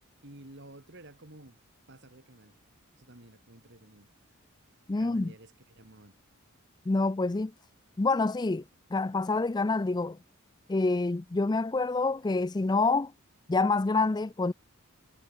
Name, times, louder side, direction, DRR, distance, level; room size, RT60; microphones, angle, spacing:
voice 1, 0.2-1.6 1.9-2.6 2.9-4.4 4.9-6.1, right 1 dB, 55° right, 3.2 m, -52 dB
voice 2, 4.9-5.3 6.9-7.5 8.0-8.6 8.9-10.2 10.7-13.1 13.5-14.5, left 3 dB, 20° left, 0.4 m, -27 dB
head